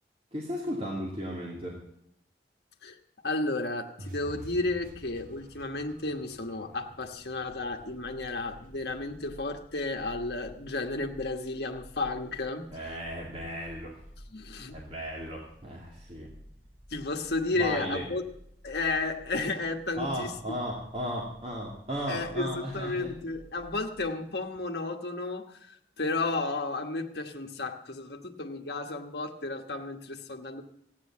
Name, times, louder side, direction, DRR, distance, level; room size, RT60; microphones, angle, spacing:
voice 1, 0.3-1.8 12.7-14.0 14.7-16.3 17.5-18.1 20.0-23.1, equal, 35° right, 2.4 m, -35 dB
voice 2, 3.2-12.9 14.3-14.8 16.9-18.2 18.6-20.3 22.1-30.6, left 2 dB, 65° left, 1.3 m, -33 dB
sound 1, 4.0-10.2, right 1 dB, 50° right, 1.2 m, -50 dB
sound 2, 7.4-24.1, equal, 5° right, 4.2 m, -53 dB
15.0 x 9.4 x 7.3 m
head